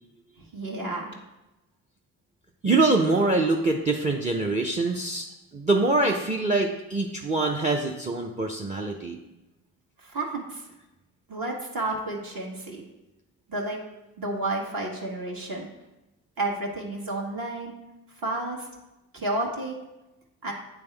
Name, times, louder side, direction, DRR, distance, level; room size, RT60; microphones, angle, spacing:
voice 1, 0.5-1.2 10.0-10.7 11.3-12.8 13.5-13.8 14.2-15.7 16.4-17.7 18.2-18.7 19.1-19.7 20.4-20.5, right 2 dB, 45° right, -2 dB, 1.6 m, -31 dB
voice 2, 2.6-5.3 5.5-9.2, right 3 dB, 15° right, 3 dB, 0.6 m, -24 dB
9.0 x 3.5 x 3.3 m, 0.99 s
hypercardioid pair, 40°, 46 cm